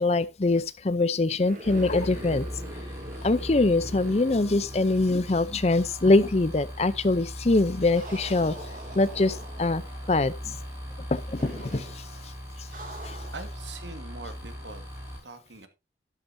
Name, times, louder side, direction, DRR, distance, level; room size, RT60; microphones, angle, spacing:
voice 1, 0.0-2.5 3.2-8.6 8.9-9.8 10.1-10.6 11.1-12.0 13.0-13.2, left 2 dB, 35° left, 0.6 m, -23 dB
sound 1, 1.4-5.5 5.8-5.9 7.9-9.9 11.4-12.0 12.7-13.6, right 1 dB, 45° right, 2.5 m, -43 dB
sound 2, 1.6-15.2, equal, 15° right, 6.2 m, -39 dB
voice 2, 13.3-14.8 15.2-15.7, right 3 dB, 85° right, 1.9 m, -42 dB
12.0 x 11.0 x 2.7 m
head